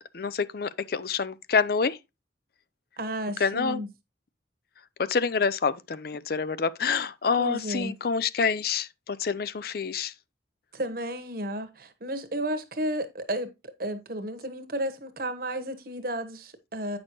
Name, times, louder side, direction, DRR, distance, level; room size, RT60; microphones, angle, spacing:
voice 1, 0.1-2.0 3.4-3.8 5.0-10.1, left 5 dB, 55° left, 0.5 m, -27 dB
voice 2, 3.0-3.9 7.4-7.9 10.7-13.5 13.8-17.0, right 1 dB, 50° right, 1.2 m, -32 dB
8.9 x 6.2 x 3.0 m
head